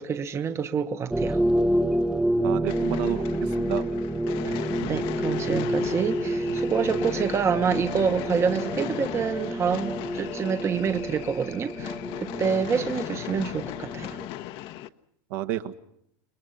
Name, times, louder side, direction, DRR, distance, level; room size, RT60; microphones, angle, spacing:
voice 1, 0.0-1.4 4.4-14.2, right 6 dB, 25° right, 1.1 m, -27 dB
sound 1, 1.1-14.3, right 1 dB, 5° right, 0.9 m, -29 dB
voice 2, 2.4-3.9 12.7-12.9 15.3-15.7, right 13 dB, 70° right, 1.8 m, -31 dB
sound 2, 2.7-14.9, left 13 dB, 50° left, 1.0 m, -36 dB
29.5 x 21.5 x 5.7 m
supercardioid pair, 130°, 11 cm